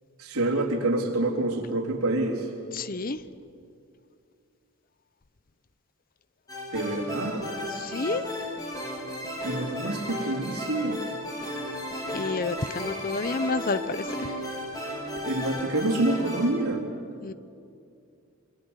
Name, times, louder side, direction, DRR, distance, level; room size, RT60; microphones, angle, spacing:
voice 1, 0.2-2.5 6.7-7.5 9.4-11.1 15.3-16.9, right 2 dB, 90° right, 0 dB, 3.7 m, -27 dB
voice 2, 2.7-3.2 7.7-8.2 12.1-14.4 17.2-17.3, left 3 dB, 40° left, 14 dB, 0.7 m, -30 dB
sound 1, 6.5-16.6, equal, 15° left, 3.9 m, -34 dB
27.5 x 23.5 x 8.1 m, 2.5 s
head